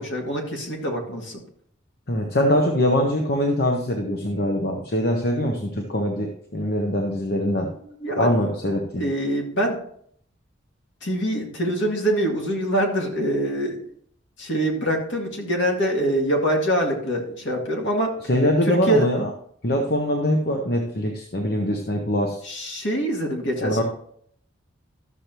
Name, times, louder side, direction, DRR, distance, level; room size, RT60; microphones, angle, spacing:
voice 1, 0.0-1.4 7.8-8.3 9.0-9.8 11.0-13.8 14.4-18.1 18.7-19.1 22.4-23.8, right 1 dB, 65° left, 0 dB, 2.1 m, -24 dB
voice 2, 2.1-7.7 8.2-9.1 18.3-19.3 19.6-22.4 23.6-23.8, equal, 50° left, 2 dB, 0.9 m, -23 dB
13.0 x 6.7 x 3.0 m, 0.63 s
head